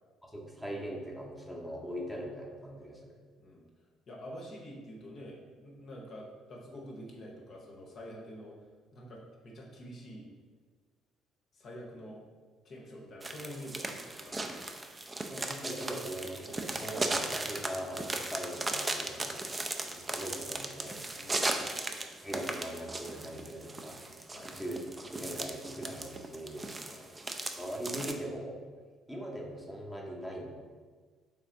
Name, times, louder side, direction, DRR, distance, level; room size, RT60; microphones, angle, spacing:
voice 1, 0.2-3.1 15.3-19.4 19.7-21.3 22.2-24.0 24.4-24.8 25.1-27.1 27.6-28.6 29.1-30.5, right 1 dB, ahead, -2 dB, 0.8 m, -41 dB
voice 2, 3.4-3.7 4.1-8.6 8.9-10.3 11.5-12.2 12.6-14.6 19.1-19.3 21.0-21.9 24.3-24.7 26.9-27.1, equal, 45° left, -1 dB, 0.7 m, -47 dB
sound 1, 13.2-28.1, right 2 dB, 20° right, 0.4 m, -37 dB
3.5 x 3.2 x 3.8 m, 1.5 s
figure-of-eight pair, 50°, 0 cm